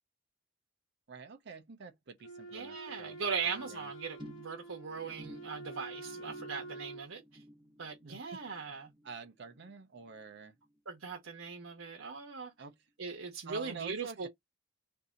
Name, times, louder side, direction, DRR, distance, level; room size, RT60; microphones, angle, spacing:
voice 1, 1.1-3.9 8.0-8.7 9.0-10.6 12.6-12.8 13.5-14.3, right 5 dB, 60° right, 0.6 m, -48 dB
Wind instrument woodwind instrument, 2.2-7.1, right 2 dB, 80° left, 0.6 m, -47 dB
voice 2, 2.5-7.2 7.8-8.9 10.9-12.5 13.0-14.3, right 5 dB, 90° right, 0.9 m, -39 dB
sound 1, 4.2-10.8 11.0-11.5 11.8-11.9, equal, 25° right, 0.8 m, -55 dB
2.6 x 2.6 x 3.8 m
head